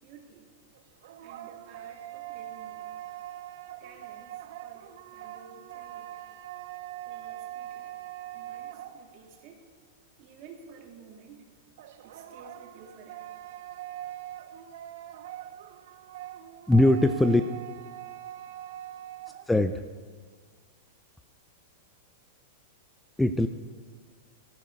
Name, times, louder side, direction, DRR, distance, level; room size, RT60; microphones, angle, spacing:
voice 1, 0.0-0.5 1.2-3.2 3.8-6.3 7.0-8.0 8.3-9.6 10.2-11.5 12.0-13.3 17.1-17.4, right 5 dB, 45° right, 0 dB, 2.8 m, -52 dB
sound 1, 0.7-9.5 11.8-19.5, right 13 dB, 65° right, 0.6 m, -42 dB
voice 2, 16.7-17.4 19.5-19.8 23.2-23.5, left 1 dB, 5° left, 9 dB, 0.4 m, -21 dB
14.5 x 10.5 x 4.7 m, 1.5 s
supercardioid pair, 145°, 0 cm